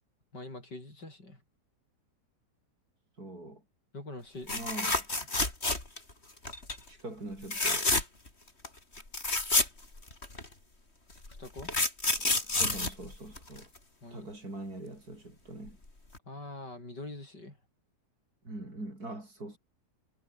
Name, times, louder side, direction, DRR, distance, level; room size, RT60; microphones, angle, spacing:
voice 1, 0.3-1.4 3.9-4.5 11.4-11.7 14.0-14.3 16.3-17.6, left 2 dB, 80° left, 8.9 m, -44 dB
voice 2, 3.2-3.6 4.5-5.1 6.9-7.9 12.4-13.7 14.1-15.8 18.4-19.6, right 2 dB, 60° right, 8.6 m, -43 dB
sound 1, 4.5-6.1 6.4-6.8 7.4-8.3 8.6-8.7 9.0-10.5 11.2-13.8 15.7-15.8 16.1-16.2, left 2 dB, 35° left, 4.5 m, -29 dB
omnidirectional pair, 1.8 m